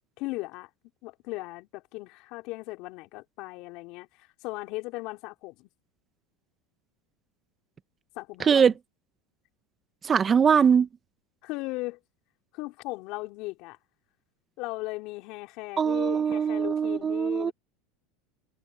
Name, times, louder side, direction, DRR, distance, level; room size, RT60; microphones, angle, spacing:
voice 1, 0.2-0.7 1.0-5.7 8.2-8.7 11.4-12.0 12.5-13.8 14.6-17.5, left 22 dB, 60° left, 4.0 m, -37 dB
voice 2, 8.4-8.7 10.0-10.9 15.8-17.5, right 7 dB, 30° right, 1.2 m, -22 dB
hypercardioid pair, 100°, 0 cm